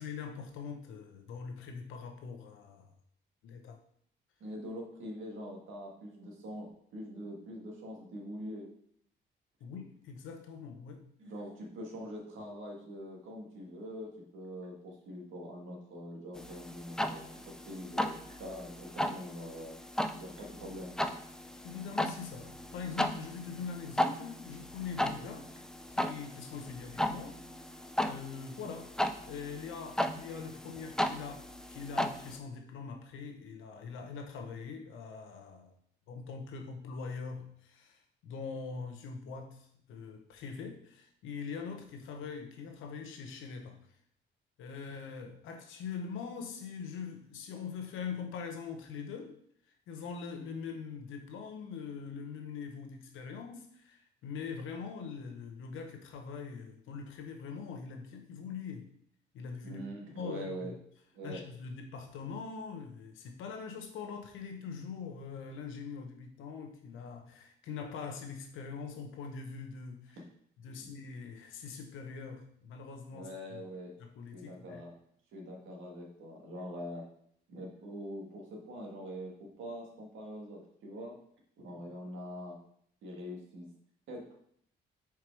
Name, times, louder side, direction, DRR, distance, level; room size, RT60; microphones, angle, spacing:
voice 1, 0.0-2.9 3.4-3.8 9.6-11.1 21.6-25.5 25.9-28.9 29.3-35.8 36.1-43.8 44.6-49.4 49.9-58.9 59.3-59.8 60.1-60.8 61.2-70.2 70.6-73.6 74.0-74.8, left 5 dB, 85° left, 0.9 m, -43 dB
voice 2, 4.4-8.7 11.2-19.8 20.2-21.0 59.6-60.7 61.1-61.4 70.7-70.8 73.1-73.9 74.3-74.9 75.3-77.1 77.5-81.1 81.6-82.6 83.0-83.7 84.1-84.4, equal, 80° right, 1.8 m, -44 dB
sound 1, 16.4-32.4, left 1 dB, 5° left, 0.4 m, -36 dB
4.7 x 4.6 x 4.7 m
cardioid pair, 90°, 20 cm